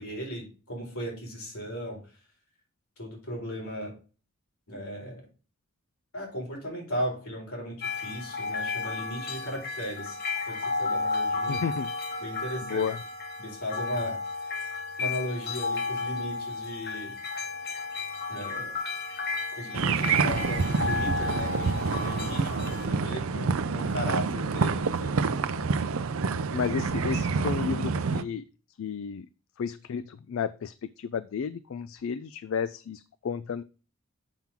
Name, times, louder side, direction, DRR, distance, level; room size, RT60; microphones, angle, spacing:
voice 1, 0.0-2.0 3.0-3.9 4.7-5.2 6.1-10.2 10.4-11.7 12.2-12.9 13.4-14.5 15.0-17.1 18.3-18.7 19.5-25.5, equal, 85° left, -2 dB, 4.3 m, -36 dB
sound 1, 7.8-22.9, left 3 dB, 45° left, 1.5 m, -33 dB
voice 2, 11.5-11.9 12.6-13.0 26.5-28.4 28.8-29.3 29.6-33.6, left 6 dB, 65° left, 15 dB, 0.4 m, -32 dB
sound 2, 19.7-28.2, right 4 dB, 70° right, 0.5 m, -27 dB
7.2 x 5.9 x 3.7 m, 0.35 s
head